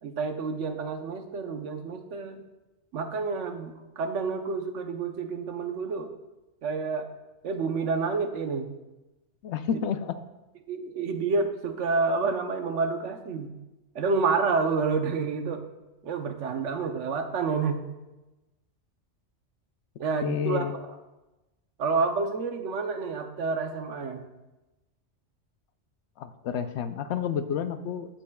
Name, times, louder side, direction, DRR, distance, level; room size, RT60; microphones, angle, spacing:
voice 1, 0.0-2.4 2.9-6.1 6.6-7.1 7.4-8.7 10.7-13.5 13.9-15.6 16.0-17.8 20.0-20.7 21.8-24.2, right 4 dB, 80° right, 6 dB, 1.1 m, -29 dB
voice 2, 9.4-10.2 20.2-20.7 26.2-28.2, left 7 dB, 75° left, 10 dB, 0.8 m, -30 dB
16.5 x 5.9 x 2.3 m, 1.1 s
omnidirectional pair, 1.2 m